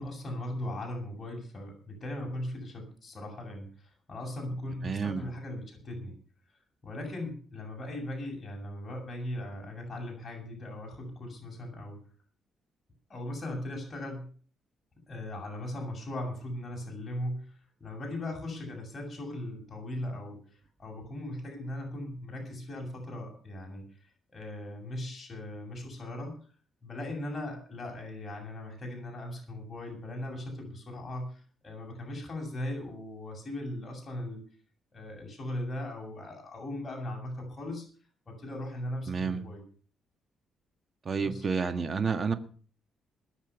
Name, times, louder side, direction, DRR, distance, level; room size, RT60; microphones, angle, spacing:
voice 1, 0.0-6.2 6.8-12.0 13.1-14.3 15.1-26.3 26.8-34.4 34.9-37.9 38.3-39.6 41.2-41.5, left 1 dB, 30° left, 0 dB, 7.4 m, -38 dB
voice 2, 4.8-5.2 39.1-39.4 41.1-42.3, right 5 dB, 40° right, 8 dB, 1.7 m, -30 dB
20.5 x 7.4 x 7.0 m, 0.42 s
cardioid pair, 90°, 0 cm